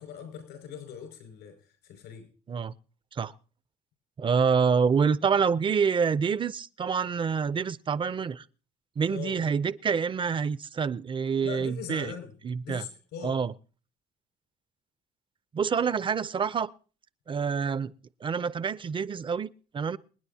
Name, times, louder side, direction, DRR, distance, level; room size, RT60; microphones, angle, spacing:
voice 1, 0.0-2.3 9.1-9.4 11.4-12.3 12.6-13.4, left 8 dB, 85° left, 5.7 m, -41 dB
voice 2, 4.2-8.4 9.0-12.1 12.4-12.8 13.2-13.5 15.5-16.7 17.3-17.9 18.2-20.0, right 6 dB, 30° right, 0.5 m, -27 dB
27.5 x 9.6 x 2.8 m
cardioid pair, 110°, 17 cm